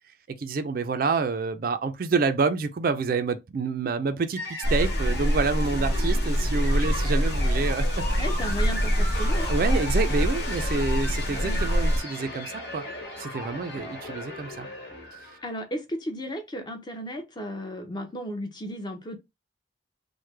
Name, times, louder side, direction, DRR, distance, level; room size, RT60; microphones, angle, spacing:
voice 1, 0.4-4.4 4.7-8.0 9.5-12.8 13.2-14.7, right 4 dB, 50° right, 0.4 m, -28 dB
sound 1, 4.4-15.5, left 1 dB, 75° left, 1.3 m, -36 dB
sound 2, 4.6-12.0, equal, 60° left, 0.9 m, -25 dB
voice 2, 8.2-9.5 11.4-11.6 15.4-19.2, equal, 25° left, 0.6 m, -34 dB
3.2 x 2.1 x 3.2 m
head